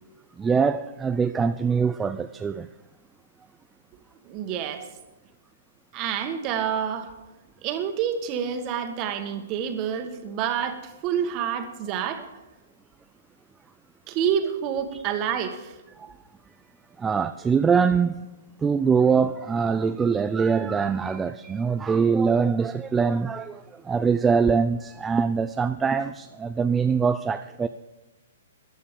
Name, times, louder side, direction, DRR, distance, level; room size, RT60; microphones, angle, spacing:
voice 1, 0.4-2.7 14.9-15.0 16.0-16.1 17.0-18.3 18.6-27.7, right 5 dB, 10° right, 0.4 m, -23 dB
voice 2, 4.2-4.9 5.9-7.1 7.6-12.2 14.1-15.7, right 8 dB, 30° right, 1.5 m, -28 dB
14.5 x 11.0 x 5.2 m
hypercardioid pair, 155°, 0 cm